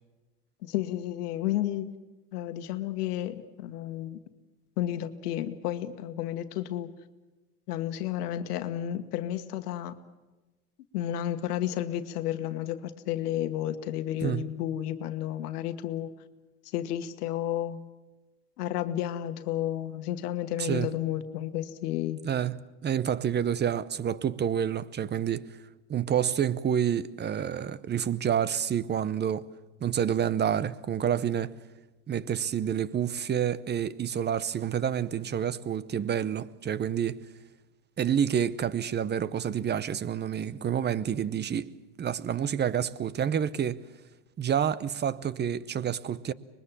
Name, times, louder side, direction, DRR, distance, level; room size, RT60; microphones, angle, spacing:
voice 1, 0.6-1.9 2.3-4.2 4.8-6.9 7.7-9.9 10.9-16.1 16.7-17.8 18.6-22.2, left 12 dB, 85° left, 1.4 m, -32 dB
voice 2, 20.6-20.9 22.2-25.5 25.9-29.5 29.8-31.6 32.1-37.3 38.0-41.7 42.0-43.8 44.4-46.3, right 9 dB, 25° right, 0.8 m, -28 dB
24.5 x 21.0 x 7.3 m
supercardioid pair, 105°, 45 cm